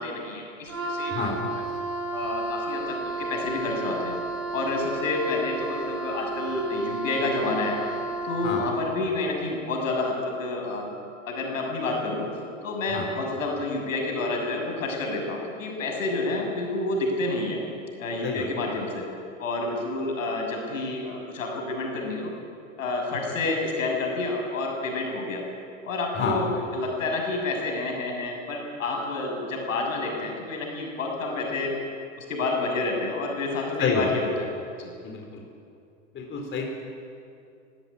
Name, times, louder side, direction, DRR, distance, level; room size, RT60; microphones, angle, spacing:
voice 1, 0.0-1.3 2.1-4.1 4.5-7.9 8.2-10.9 11.3-12.2 12.6-17.6 18.0-19.0 19.4-22.3 22.8-25.4 25.8-31.8 32.2-34.5 34.8-34.9, left 2 dB, 80° left, 1 dB, 6.6 m, -29 dB
Wind instrument woodwind instrument, 0.7-8.8, right 2 dB, 85° right, 2.7 m, -32 dB
voice 2, 1.1-1.4 8.4-8.7 12.9-13.1 18.2-18.5 26.2-26.4 33.8-34.1 35.0-35.4 36.1-36.7, left 5 dB, 30° left, 1 dB, 4.0 m, -28 dB
20.5 x 16.0 x 10.0 m, 2.5 s
hypercardioid pair, 105°, 39 cm